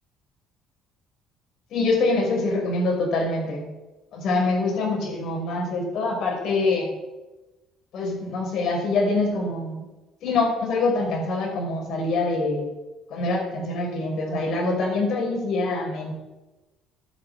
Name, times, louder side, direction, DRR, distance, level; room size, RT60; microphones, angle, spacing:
voice 1, 1.7-3.7 4.1-6.9 7.9-9.8 10.2-12.7 13.1-16.1, left 3 dB, 65° left, 1 dB, 5.7 m, -25 dB
12.5 x 9.6 x 8.4 m, 1.1 s
cardioid pair, 100°, 0 cm